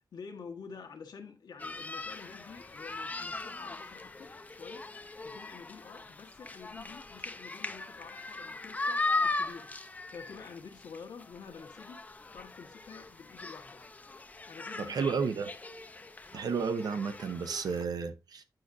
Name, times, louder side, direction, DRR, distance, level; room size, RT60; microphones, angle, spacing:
voice 1, 0.1-4.8 5.2-12.0 12.3-13.8 14.5-15.1, left 5 dB, 85° left, 1.4 m, -49 dB
sound 1, 1.6-17.8, left 3 dB, 20° left, 0.5 m, -39 dB
voice 2, 14.8-15.5 16.3-18.4, right 5 dB, 70° right, 0.8 m, -32 dB
9.0 x 5.9 x 2.6 m
wide cardioid pair, 150°, 7 cm